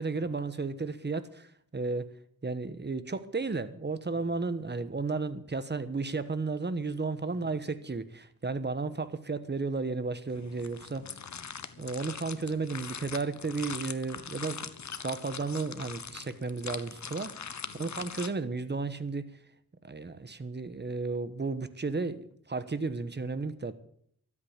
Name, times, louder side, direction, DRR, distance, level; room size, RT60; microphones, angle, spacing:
voice 1, 0.0-2.1 2.4-11.1 11.8-14.7 15.0-19.3 19.8-23.7, right 3 dB, 30° right, 13 dB, 1.2 m, -33 dB
voice 2, 4.0-4.4 7.3-7.5 11.0-11.8 12.5-12.6 17.6-18.0, left 6 dB, 75° left, 12 dB, 1.2 m, -56 dB
sound 1, 10.3-18.3, left 6 dB, 55° left, 1.0 m, -42 dB
13.0 x 8.6 x 8.6 m, 0.66 s
cardioid pair, 70°, 35 cm